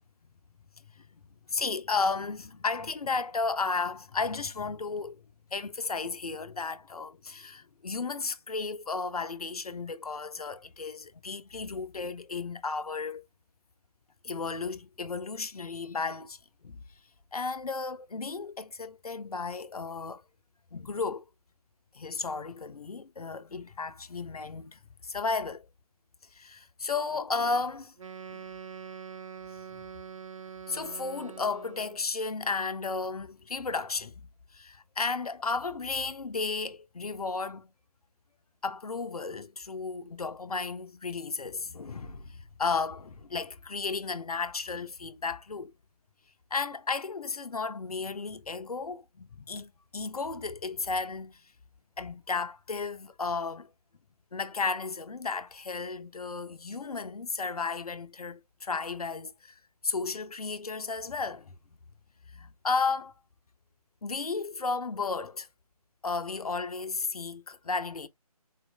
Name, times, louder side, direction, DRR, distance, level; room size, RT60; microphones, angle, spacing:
voice 1, 1.5-5.2 5.5-13.3 14.2-16.4 16.6-16.8 17.3-20.2 20.7-21.2 21.9-25.7 26.3-28.0 28.3-28.4 30.7-37.7 38.6-45.7 46.5-51.4 52.0-53.7 54.3-59.5 59.8-61.6 62.3-63.1 64.0-65.5 66.0-68.1, left 4 dB, 70° left, 0.6 m, -33 dB
Wind instrument woodwind instrument, 28.0-32.1, right 7 dB, 55° right, 0.4 m, -44 dB
4.0 x 3.0 x 2.2 m
figure-of-eight pair, 155°, 20 cm